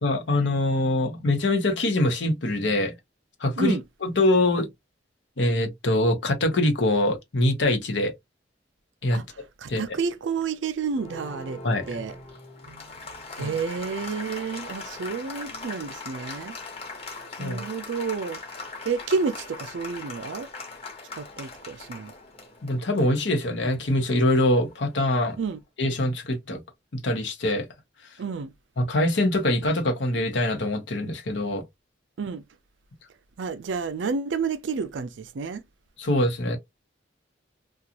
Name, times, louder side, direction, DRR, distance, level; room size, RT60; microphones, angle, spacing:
voice 1, 0.0-2.9 3.4-3.8 4.0-4.7 5.4-8.1 9.0-9.2 9.7-9.9 11.6-11.9 13.4-13.5 17.4-17.7 22.6-25.4 25.8-26.6 27.0-27.7 28.8-31.6 36.0-36.6, left 1 dB, 75° left, 0.8 m, -24 dB
voice 2, 9.1-11.6 11.9-12.2 12.6-16.6 17.4-18.4 18.8-20.5 21.2-22.1 25.4-25.6 28.2-28.5 32.2-32.4 33.4-35.6, right 5 dB, 80° right, 0.4 m, -30 dB
Applause, 10.9-25.3, left 3 dB, 30° left, 1.0 m, -41 dB
2.5 x 2.3 x 2.8 m
head